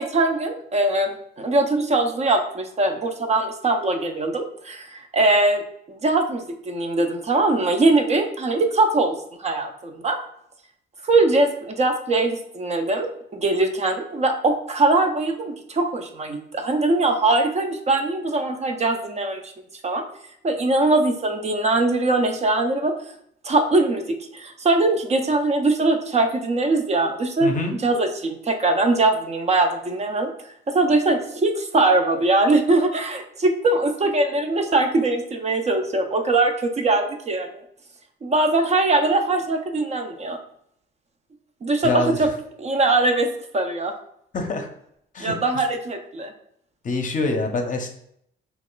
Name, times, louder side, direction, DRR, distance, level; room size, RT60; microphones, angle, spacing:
voice 1, 0.0-5.6 5.9-9.1 9.4-10.2 11.0-19.5 19.8-20.0 20.4-22.9 23.4-24.0 24.3-27.5 27.8-30.3 30.7-37.6 38.2-40.4 41.6-42.3 42.6-43.3 43.5-43.9 45.2-46.3, right 2 dB, 35° right, 5 dB, 0.5 m, -21 dB
voice 2, 27.4-27.7 41.8-42.2 44.3-44.7 45.1-45.3 46.8-47.9, left 3 dB, 40° left, 4 dB, 0.6 m, -25 dB
2.9 x 2.4 x 3.7 m, 0.71 s
cardioid pair, 90°, 20 cm